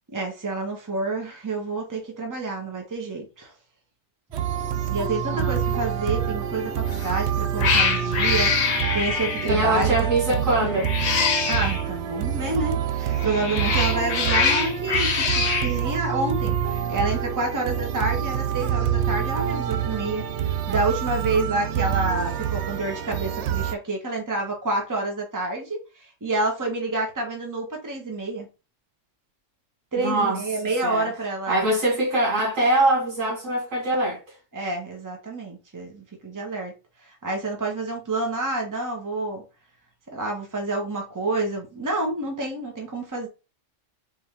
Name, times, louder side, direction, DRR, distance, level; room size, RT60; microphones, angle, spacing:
voice 1, 0.1-3.5 4.9-9.9 10.3-10.4 11.5-28.5 29.9-31.7 34.5-36.7 37.0-39.4 40.1-43.3, right 2 dB, 15° right, 1.1 m, -28 dB
sound 1, 4.3-23.7, right 9 dB, 65° right, 0.8 m, -27 dB
Cat, 6.9-7.2 7.6-9.6 10.7-11.8 13.1-15.7, left 5 dB, 75° left, 1.3 m, -24 dB
voice 2, 9.4-10.9 30.0-30.4 30.8-31.1 31.5-34.2, right 1 dB, 85° right, 2.4 m, -23 dB
4.6 x 2.8 x 3.6 m
omnidirectional pair, 1.3 m